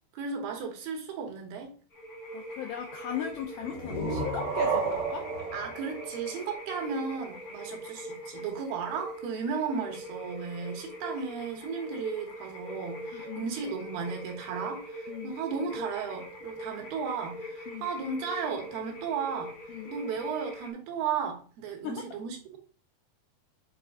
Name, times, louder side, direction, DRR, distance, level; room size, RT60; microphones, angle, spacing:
voice 1, 0.1-1.7 5.5-19.5 19.8-22.6, right 6 dB, 75° right, 3.2 m, -35 dB
sound 1, 1.9-20.7, equal, 60° left, 0.9 m, -42 dB
voice 2, 2.3-5.3 13.1-13.4 15.1-15.3 17.7-17.9 19.7-19.9 21.8-22.0, left 8 dB, 80° left, 1.8 m, -37 dB
sound 2, 3.6-7.2, right 5 dB, 55° right, 1.2 m, -32 dB
8.2 x 4.3 x 3.7 m
omnidirectional pair, 4.5 m